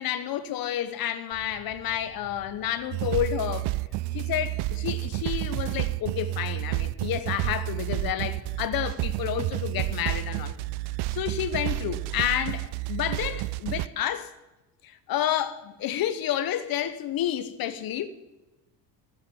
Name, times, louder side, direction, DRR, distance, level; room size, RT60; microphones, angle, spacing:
voice 1, 0.0-3.7 4.1-10.6 11.1-14.3 14.8-18.1, left 11 dB, 55° left, 1.1 m, -30 dB
Fire, 1.3-12.1, left 2 dB, 35° left, 2.2 m, -51 dB
sound 1, 2.9-13.9, right 19 dB, 70° right, 0.5 m, -30 dB
14.5 x 7.8 x 9.8 m
cardioid pair, 120°, 41 cm